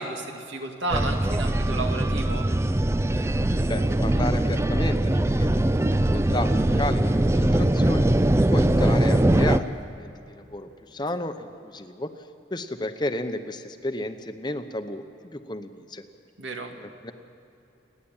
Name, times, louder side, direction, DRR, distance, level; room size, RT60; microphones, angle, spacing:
voice 1, 0.0-2.5 16.4-16.7, right 2 dB, 80° right, 3 dB, 2.3 m, -32 dB
sound 1, 0.9-9.6, right 1 dB, 15° right, 0.4 m, -22 dB
sound 2, 3.1-9.9, equal, 35° right, 3.3 m, -48 dB
voice 2, 3.6-5.9 6.1-8.1 8.5-12.1 12.5-16.0 16.7-17.1, left 1 dB, 25° left, 9 dB, 0.8 m, -33 dB
29.0 x 10.5 x 8.8 m, 2.9 s
head